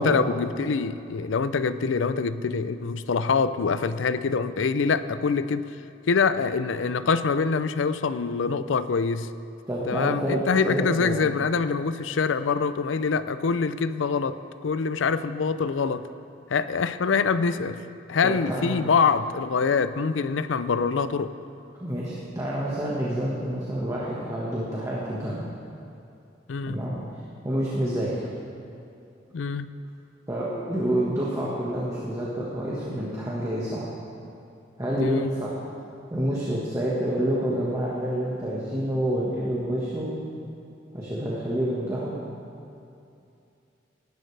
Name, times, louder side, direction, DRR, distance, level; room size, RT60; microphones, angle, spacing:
voice 1, 0.0-5.6 6.1-9.3 9.9-16.0 16.5-17.8 18.1-21.3 26.5-26.8 29.3-29.7 34.9-35.3, left 5 dB, 90° left, 13 dB, 0.5 m, -25 dB
voice 2, 9.7-11.2 18.2-18.9 21.8-25.5 26.6-26.9 27.4-28.3 30.3-33.9 34.8-35.6 36.1-40.1 40.9-42.1, right 1 dB, 15° right, -6 dB, 1.5 m, -28 dB
18.5 x 11.5 x 3.4 m, 2.7 s
head